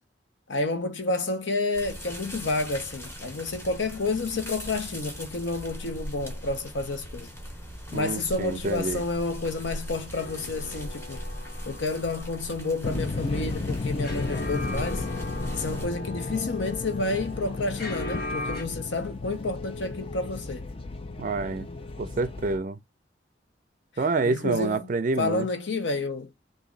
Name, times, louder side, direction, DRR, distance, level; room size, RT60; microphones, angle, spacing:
voice 1, 0.5-7.3 7.9-11.2 11.7-15.1 15.5-20.6 24.2-24.8 25.2-26.3, left 3 dB, 75° left, 0.8 m, -30 dB
sound 1, 1.7-15.9, equal, 15° left, 0.8 m, -39 dB
voice 2, 7.9-9.0 21.2-21.7 22.0-22.8 24.0-25.5, right 3 dB, 45° right, 0.4 m, -27 dB
sound 2, 10.1-18.6, left 2 dB, 55° left, 1.1 m, -39 dB
sound 3, 12.8-22.6, left 3 dB, 30° left, 0.4 m, -34 dB
3.0 x 2.6 x 3.8 m
head